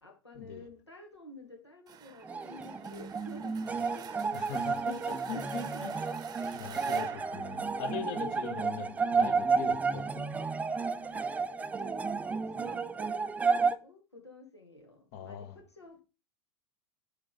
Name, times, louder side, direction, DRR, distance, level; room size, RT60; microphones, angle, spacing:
voice 1, 0.0-4.1 5.3-5.4 5.7-5.8 10.7-12.1 12.5-16.0, left 1 dB, 85° left, 1.7 m, -51 dB
sound 1, 1.9-8.6, right 8 dB, 30° right, 0.8 m, -49 dB
sound 2, 2.2-13.8, right 4 dB, 10° right, 0.4 m, -32 dB
voice 2, 4.3-5.9 6.5-10.3 15.1-15.6, left 8 dB, 50° left, 1.1 m, -41 dB
8.2 x 3.5 x 4.0 m
figure-of-eight pair, 85°, 14 cm